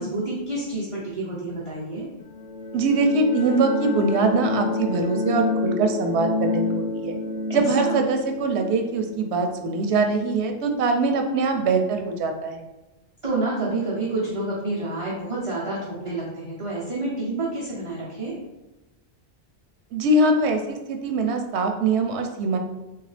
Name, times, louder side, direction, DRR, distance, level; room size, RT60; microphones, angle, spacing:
voice 1, 0.0-2.0 7.5-8.0 13.2-18.4, right 2 dB, 35° right, -7 dB, 0.8 m, -29 dB
sound 1, 2.2-10.8, left 3 dB, 50° left, 0.8 m, -29 dB
voice 2, 2.7-7.2 7.5-12.6 19.9-22.6, right 3 dB, 85° right, 5 dB, 0.9 m, -23 dB
3.7 x 3.3 x 3.2 m, 1.0 s
omnidirectional pair, 1.1 m